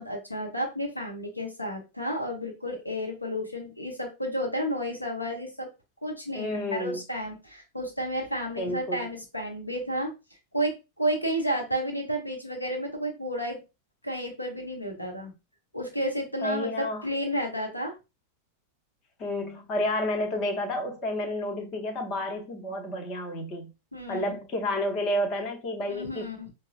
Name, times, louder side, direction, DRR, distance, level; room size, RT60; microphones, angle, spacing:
voice 1, 0.0-5.7 6.0-10.1 10.5-13.6 14.0-15.3 15.7-17.9 23.9-24.4 25.9-26.5, equal, 85° left, 1.0 m, -31 dB
voice 2, 6.3-7.0 8.6-9.1 16.4-17.1 19.2-23.7 24.1-26.3, left 1 dB, 35° left, 0.8 m, -30 dB
4.7 x 2.3 x 2.5 m
figure-of-eight pair, 90°, 0 cm